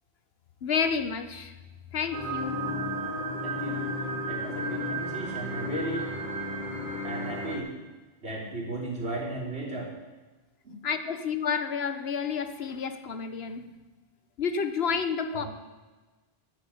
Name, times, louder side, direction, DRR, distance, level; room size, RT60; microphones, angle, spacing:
voice 1, 0.6-1.5 1.9-2.7 10.8-13.6 14.4-15.4, left 6 dB, 70° left, 10 dB, 1.1 m, -30 dB
sound 1, 2.1-7.6, equal, 45° right, 2.2 m, -33 dB
voice 2, 3.4-3.9 4.2-6.1 7.0-7.7 8.2-9.9 15.3-15.5, right 2 dB, 80° right, -4 dB, 3.8 m, -35 dB
11.5 x 7.5 x 8.5 m, 1.2 s
omnidirectional pair, 1.1 m